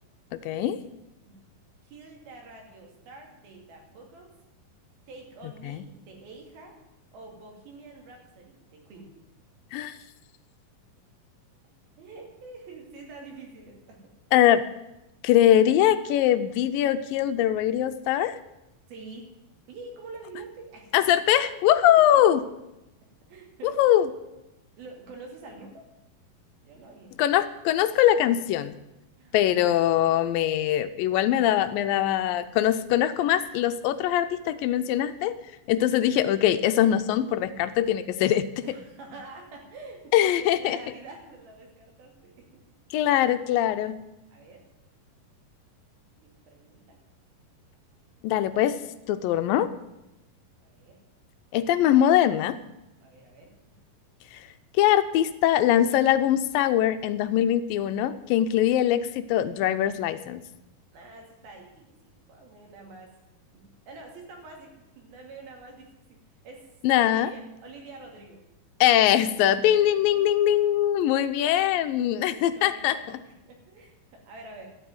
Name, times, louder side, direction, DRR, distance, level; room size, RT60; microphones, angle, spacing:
voice 1, 0.3-0.8 5.7-5.8 9.7-9.9 14.3-14.6 15.2-18.4 20.9-22.4 23.6-24.1 27.2-28.7 29.3-35.4 35.7-38.5 40.1-40.8 42.9-44.0 48.2-48.8 49.1-49.7 51.5-52.6 54.3-54.5 54.7-60.4 66.8-67.3 68.8-72.9, left 11 dB, 80° left, 11 dB, 2.3 m, -22 dB
voice 2, 1.2-1.6 1.8-4.3 5.1-6.8 7.1-9.1 12.0-14.1 18.9-19.3 19.7-20.9 22.1-22.2 23.3-23.7 24.3-24.4 24.8-25.9 26.6-27.2 29.2-29.4 38.6-42.6 44.3-44.6 46.2-47.0 49.2-49.4 50.6-51.0 53.0-53.8 60.9-66.2 66.4-66.7 67.0-68.4 69.4-69.5 69.8-70.9 72.1-74.7, right 3 dB, 85° right, 2 dB, 4.4 m, -47 dB
12.0 x 8.2 x 9.3 m, 0.93 s
omnidirectional pair, 4.1 m